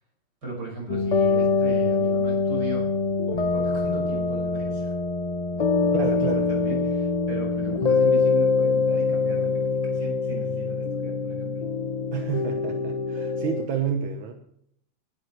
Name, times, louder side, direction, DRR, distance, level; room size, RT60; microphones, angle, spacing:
voice 1, 0.4-2.9 3.3-4.9 5.4-11.6, right 2 dB, 60° right, -2 dB, 6.6 m, -38 dB
sound 1, 0.9-13.7, left 4 dB, 60° left, 0.4 m, -24 dB
voice 2, 5.9-6.5 12.1-14.3, right 8 dB, 90° right, 4 dB, 2.0 m, -29 dB
18.5 x 12.0 x 3.2 m, 0.70 s
omnidirectional pair, 2.1 m